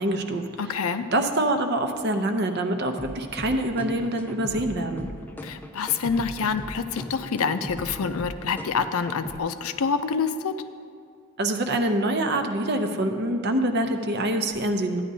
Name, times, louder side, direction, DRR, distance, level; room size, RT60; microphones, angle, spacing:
voice 1, 0.0-0.5 1.1-5.1 11.4-15.0, right 1 dB, 50° right, 6 dB, 0.6 m, -25 dB
voice 2, 0.6-1.0 5.4-10.5, left 5 dB, 85° left, 10 dB, 0.5 m, -27 dB
sound 1, 3.0-9.4, equal, 10° left, 0.4 m, -38 dB
13.5 x 10.0 x 2.7 m, 2.3 s
head